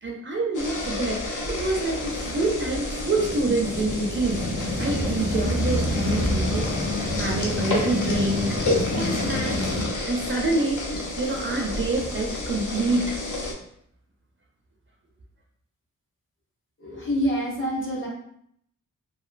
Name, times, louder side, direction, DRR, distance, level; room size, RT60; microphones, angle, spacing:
voice 1, 0.0-4.5 4.8-9.7 10.0-13.2, right 2 dB, 40° right, -1 dB, 0.4 m, -27 dB
sound 1, 0.5-13.5, left 2 dB, 70° left, 0.6 m, -30 dB
sound 2, 3.0-9.8, left 1 dB, 85° left, 1.0 m, -29 dB
voice 2, 16.8-18.1, equal, 35° left, -4 dB, 1.0 m, -26 dB
3.0 x 2.5 x 2.4 m, 0.69 s
wide cardioid pair, 145°, 32 cm